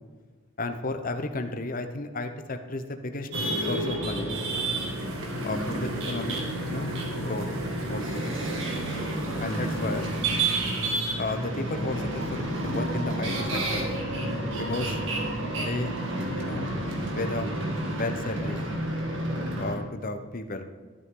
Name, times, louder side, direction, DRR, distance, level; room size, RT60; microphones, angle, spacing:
voice 1, 0.6-3.3 3.7-4.3 5.4-6.4 6.7-7.5 7.9-8.3 9.4-10.1 11.2-13.9 14.5-15.0 15.5-15.9 16.4-16.7 17.2-17.5 17.9-18.6 19.6-20.6, left 2 dB, 40° left, 7 dB, 0.8 m, -33 dB
sound 1, 3.3-19.7, right 1 dB, 60° right, 2.1 m, -30 dB
sound 2, 4.3-10.9, right 3 dB, 85° right, 1.5 m, -46 dB
12.5 x 11.0 x 3.8 m, 1.5 s
head